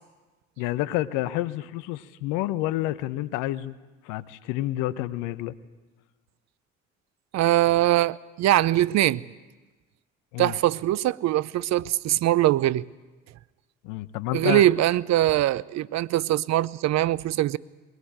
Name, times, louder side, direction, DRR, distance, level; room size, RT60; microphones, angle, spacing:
voice 1, 0.6-3.8 4.0-5.5 10.3-10.6 13.8-14.6, left 15 dB, 70° left, 1.1 m, -29 dB
voice 2, 7.3-9.2 10.4-12.9 14.3-17.6, right 14 dB, 55° right, 0.7 m, -22 dB
22.5 x 21.0 x 8.9 m
hypercardioid pair, 55°, 32 cm